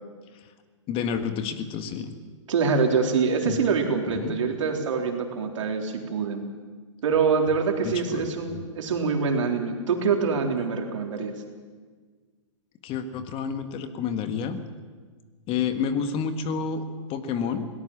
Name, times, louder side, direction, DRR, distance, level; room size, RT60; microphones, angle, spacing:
voice 1, 0.9-2.1 3.4-3.6 4.1-4.4 7.8-8.3 12.8-14.6 15.5-17.7, left 6 dB, 35° left, 8 dB, 1.8 m, -29 dB
voice 2, 2.5-6.4 7.0-11.3, right 5 dB, 70° right, 2 dB, 3.7 m, -25 dB
21.0 x 18.5 x 7.3 m, 1.5 s
hypercardioid pair, 115°, 16 cm